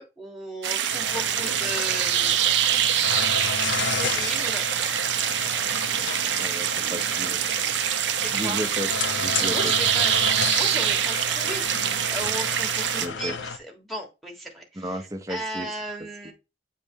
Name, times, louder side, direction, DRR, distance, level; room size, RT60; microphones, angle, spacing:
voice 1, 0.0-2.4 3.9-4.7 8.1-8.7 9.2-16.3, right 1 dB, ahead, 1.1 m, -36 dB
sound 1, 0.6-13.1, right 10 dB, 75° right, 0.6 m, -25 dB
sound 2, 0.9-13.6, left 5 dB, 80° left, 0.7 m, -33 dB
voice 2, 6.4-7.5 8.3-8.9 9.2-9.7 13.0-13.3 14.8-15.7, equal, 20° right, 0.7 m, -33 dB
8.4 x 3.2 x 3.6 m
head